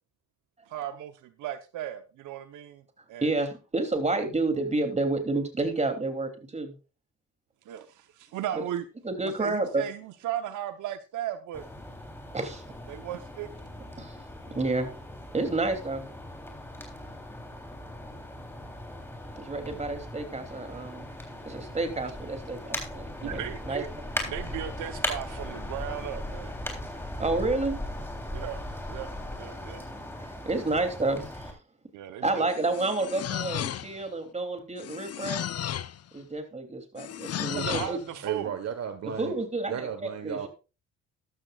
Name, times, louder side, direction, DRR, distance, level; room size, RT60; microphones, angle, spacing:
voice 1, 0.7-2.8 3.1-3.3 7.6-8.8 9.2-11.6 12.9-13.5 23.2-23.9 24.2-26.5 28.3-28.6 28.9-29.8 31.9-32.7 37.6-38.5, right 11 dB, 85° right, 9 dB, 1.0 m, -36 dB
voice 2, 3.2-6.8 9.0-9.8 12.3-12.6 14.0-14.2 14.5-14.9 15.3-16.1 19.4-21.1 21.4-23.8 27.2-27.8 30.1-31.6 32.2-35.4 36.1-38.0 39.2-40.5, right 2 dB, 20° right, 6 dB, 3.0 m, -30 dB
sound 1, 11.5-31.5, left 1 dB, 10° left, 3.5 m, -38 dB
sound 2, 32.5-34.1 34.8-36.0 37.0-38.0, left 11 dB, 55° left, 0.8 m, -34 dB
voice 3, 38.2-39.3 39.7-40.5, right 8 dB, 55° right, 9 dB, 1.4 m, -34 dB
13.5 x 12.5 x 2.4 m, 0.31 s
cardioid pair, 90°, 30 cm